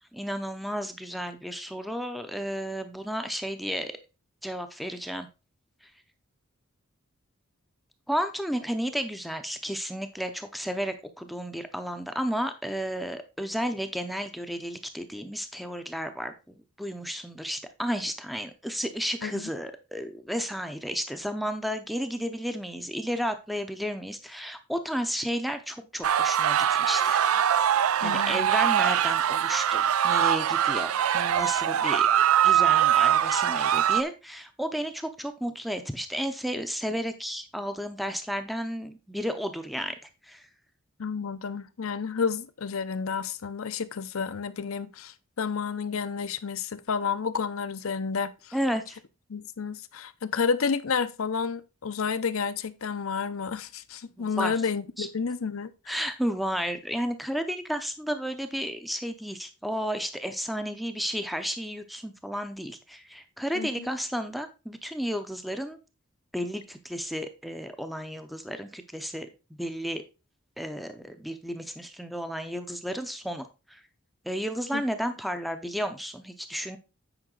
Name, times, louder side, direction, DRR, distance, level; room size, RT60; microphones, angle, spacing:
voice 1, 0.1-3.9 4.4-5.3 5.8-5.9 8.1-27.2 27.7-32.1 32.4-39.9 40.2-40.5 48.5-49.0 54.2-54.5 55.0-55.1 55.9-65.8 66.3-69.3 69.6-70.0 70.6-73.8 74.2-76.8, equal, ahead, 0.6 m, -32 dB
sound 1, 26.0-34.0, right 10 dB, 85° right, 0.4 m, -23 dB
voice 2, 28.0-28.5 41.0-48.5 49.3-56.1 63.5-63.9 74.7-74.8, left 5 dB, 75° left, 0.7 m, -31 dB
8.9 x 5.2 x 3.8 m
head